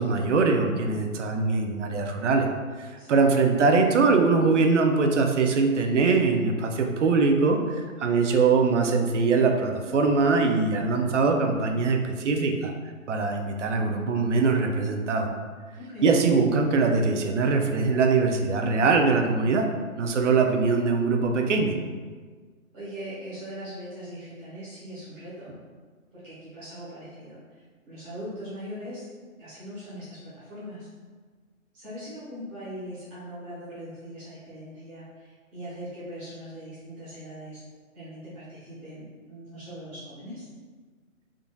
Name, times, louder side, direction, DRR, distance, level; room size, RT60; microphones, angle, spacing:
voice 1, 0.0-2.5 2.8-12.7 13.1-15.3 16.0-19.7 20.0-21.7, right 4 dB, 60° right, 4 dB, 0.5 m, -22 dB
voice 2, 15.8-16.1 22.7-25.5 26.1-29.0 29.4-30.9 31.7-37.6 37.9-40.5, equal, 10° right, -15 dB, 1.0 m, -40 dB
3.6 x 2.5 x 2.2 m, 1.5 s
hypercardioid pair, 160°, 42 cm